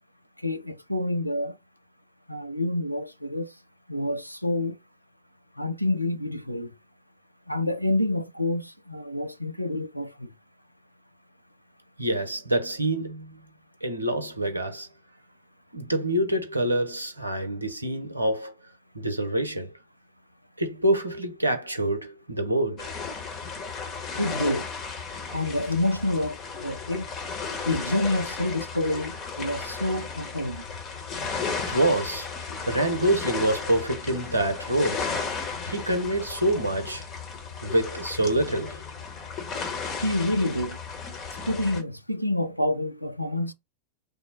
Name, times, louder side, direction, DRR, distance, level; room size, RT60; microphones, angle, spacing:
voice 1, 0.4-1.6 2.3-3.5 3.9-4.8 5.6-6.7 7.5-10.3 24.2-24.7 25.3-27.1 27.6-30.6 40.0-40.8 41.5-43.5, left 1 dB, 90° left, 0.4 m, -28 dB
voice 2, 12.0-13.4 13.8-14.9 15.7-18.5 18.9-19.7 20.6-22.9 31.7-32.3 32.7-35.1 35.7-37.0 37.6-38.8, right 1 dB, 80° right, 0.7 m, -26 dB
sound 1, 22.8-41.8, left 5 dB, 30° left, 1.0 m, -35 dB
3.4 x 2.1 x 4.2 m
figure-of-eight pair, 90°, 0 cm